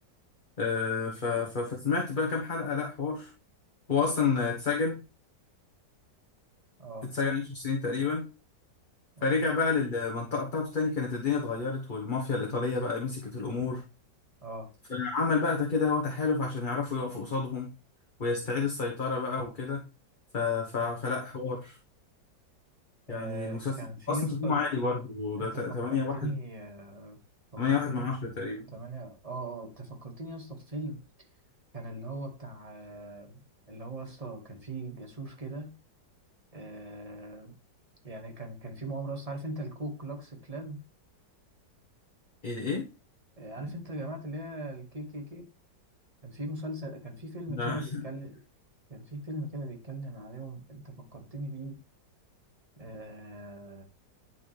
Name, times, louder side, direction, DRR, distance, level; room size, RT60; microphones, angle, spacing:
voice 1, 0.6-3.3 3.9-5.0 7.0-8.3 9.2-13.8 14.9-17.7 18.2-19.9 20.3-21.8 23.1-23.7 24.1-26.3 27.6-28.7 42.4-42.9 47.5-48.0, left 4 dB, 30° left, -1 dB, 1.3 m, -30 dB
voice 2, 6.8-7.1 9.2-9.3 14.4-14.7 20.8-21.0 23.1-24.7 25.4-25.6 25.9-27.2 27.7-28.3 28.7-31.0 31.7-33.4 33.7-35.7 36.5-37.6 38.0-40.8 43.4-45.5 46.2-48.4 48.9-51.8 52.8-53.8, right 1 dB, 20° right, 2 dB, 1.8 m, -39 dB
10.5 x 5.8 x 3.4 m, 0.30 s
omnidirectional pair, 2.0 m